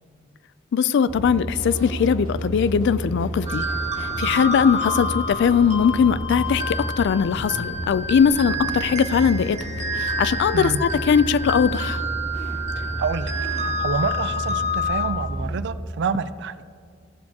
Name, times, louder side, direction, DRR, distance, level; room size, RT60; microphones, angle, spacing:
voice 1, 0.7-3.7 4.2-9.6 9.9-12.0, left 6 dB, 60° left, 17 dB, 0.3 m, -20 dB
sound 1, 1.1-15.6, right 1 dB, 90° left, 2.8 m, -32 dB
sound 2, 3.5-15.1, left 1 dB, 35° right, 1.2 m, -29 dB
voice 2, 12.8-16.6, right 5 dB, 60° right, 14 dB, 0.4 m, -28 dB
15.5 x 6.3 x 3.6 m, 2.1 s
head